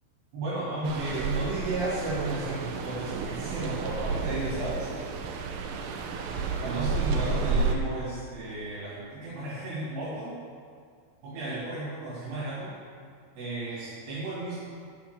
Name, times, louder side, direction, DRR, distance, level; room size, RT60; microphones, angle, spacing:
voice 1, 0.3-4.9 6.6-10.4 11.2-12.7 13.4-14.6, right 2 dB, 60° right, -10 dB, 4.3 m, -33 dB
sound 1, 0.8-7.8, right 4 dB, 90° right, 3.1 m, -31 dB
10.5 x 5.8 x 6.6 m, 2.2 s
omnidirectional pair, 5.6 m